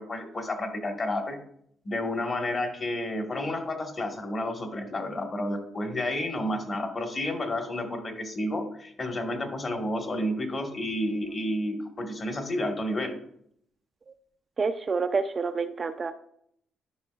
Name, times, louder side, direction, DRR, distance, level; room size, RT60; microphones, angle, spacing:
voice 1, 0.0-1.4 1.8-13.1, left 1 dB, 40° left, 3 dB, 1.6 m, -31 dB
voice 2, 14.6-16.1, right 4 dB, 35° right, 8 dB, 0.5 m, -28 dB
11.0 x 5.4 x 2.5 m, 0.68 s
cardioid pair, 90°, 0 cm